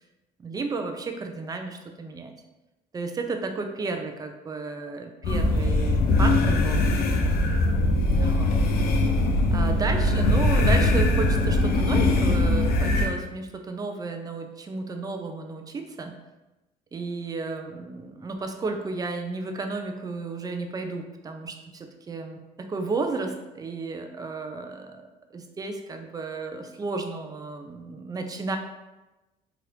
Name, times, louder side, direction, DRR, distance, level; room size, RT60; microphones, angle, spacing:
voice 1, 0.4-2.3 2.9-6.9 8.1-8.5 9.5-16.2 16.9-25.0 25.3-28.6, right 3 dB, 20° right, 5 dB, 0.4 m, -33 dB
sound 1, 5.2-13.1, left 2 dB, 65° left, 0.5 m, -21 dB
2.9 x 2.4 x 3.2 m, 1.0 s
cardioid pair, 110°, 17 cm